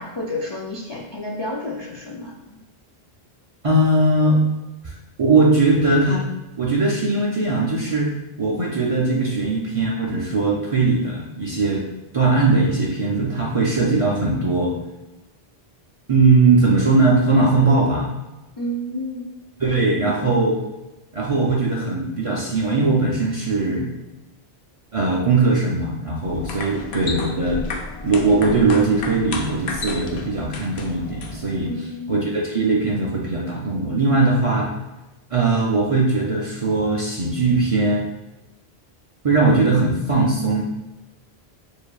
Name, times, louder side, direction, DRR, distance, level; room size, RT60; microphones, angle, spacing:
voice 1, 0.0-2.6 18.6-19.3 26.6-27.0 31.7-32.2, left 1 dB, 40° left, -3 dB, 0.3 m, -31 dB
voice 2, 3.6-4.4 5.2-6.2 6.6-8.1 8.4-11.8 12.1-14.7 16.1-18.1 19.6-20.6 21.1-23.9 24.9-27.6 28.0-31.7 32.1-34.7 35.3-38.0 39.2-40.6, right 3 dB, 45° right, -3 dB, 0.5 m, -19 dB
sound 1, 26.2-31.6, left 3 dB, 80° left, 0.8 m, -33 dB
6.7 x 2.6 x 2.3 m, 1.0 s
omnidirectional pair, 1.1 m